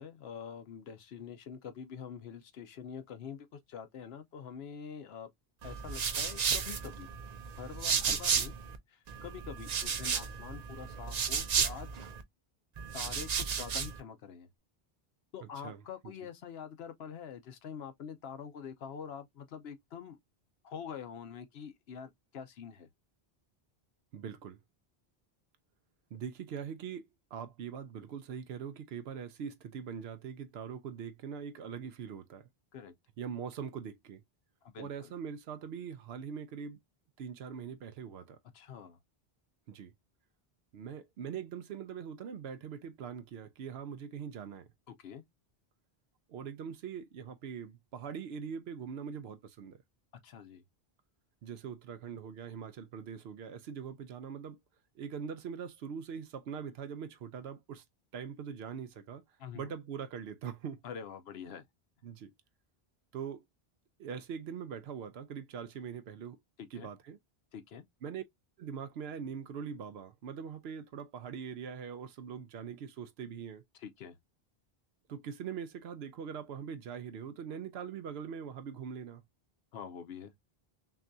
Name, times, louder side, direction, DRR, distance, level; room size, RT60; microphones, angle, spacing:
voice 1, 0.0-5.3 5.6-7.1 7.6-8.5 8.9-11.9 12.9-14.5 15.3-20.2 20.6-22.9 32.7-32.9 34.6-35.1 38.5-39.0 45.0-45.2 50.2-50.6 59.4-59.7 60.8-61.6 66.6-66.9 67.5-67.8 73.8-74.2 79.7-80.3, left 7 dB, 80° left, 0.9 m, -45 dB
sound 1, 5.6-8.8 9.1-12.2 12.8-14.0, right 6 dB, 50° right, 0.6 m, -33 dB
voice 2, 15.4-16.1 24.1-24.6 26.1-27.0 27.3-32.5 33.2-34.2 34.8-36.8 37.2-38.4 39.7-39.9 40.7-44.7 46.3-49.8 51.4-54.6 55.0-57.8 58.1-59.2 59.5-60.8 62.0-62.3 63.1-63.4 64.0-66.4 66.7-67.2 68.0-68.2 68.6-73.6 75.1-79.2, right 7 dB, 85° right, 0.8 m, -42 dB
5.9 x 2.3 x 2.6 m
omnidirectional pair, 1.0 m